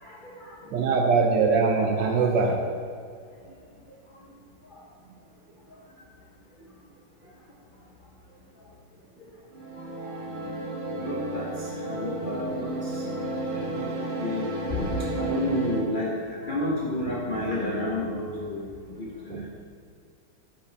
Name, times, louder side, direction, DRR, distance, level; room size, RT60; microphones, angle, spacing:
voice 1, 0.0-1.1 4.7-4.8 10.0-10.1 10.9-13.0 13.4-18.7 19.0-19.5, left 1 dB, 60° left, -4 dB, 0.5 m, -31 dB
voice 2, 0.7-2.6 19.3-19.4, right 4 dB, 70° right, 1 dB, 1.2 m, -22 dB
sound 1, 9.5-15.9, right 2 dB, 50° right, 1.6 m, -32 dB
9.5 x 5.9 x 3.3 m, 2.2 s
omnidirectional pair, 2.2 m